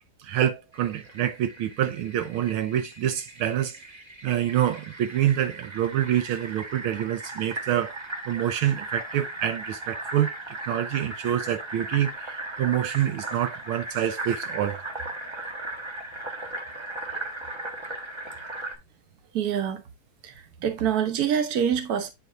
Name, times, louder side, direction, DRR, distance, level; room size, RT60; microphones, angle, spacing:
voice 1, 0.2-3.8 4.2-7.9 8.3-10.3 10.7-14.8, right 11 dB, 80° right, 1.5 m, -26 dB
Fill (with liquid), 0.7-18.7, right 2 dB, 20° right, 0.8 m, -37 dB
voice 2, 19.3-19.8 20.2-20.3 20.6-22.1, right 8 dB, 55° right, 1.3 m, -25 dB
9.2 x 4.8 x 2.4 m
omnidirectional pair, 2.4 m